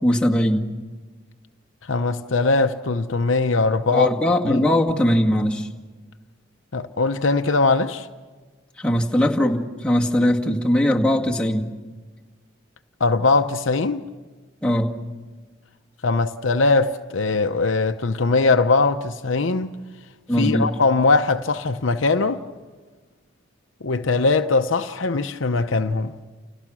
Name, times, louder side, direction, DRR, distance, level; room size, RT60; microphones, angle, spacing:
voice 1, 0.0-0.7 3.9-5.7 8.8-11.8 14.6-15.0 20.3-20.7, left 1 dB, 5° left, 1.8 m, -20 dB
voice 2, 1.9-4.1 4.5-4.6 6.7-8.1 13.0-14.0 16.0-19.8 20.4-22.4 23.8-26.1, left 3 dB, 80° left, 0.8 m, -21 dB
29.5 x 29.0 x 6.2 m
head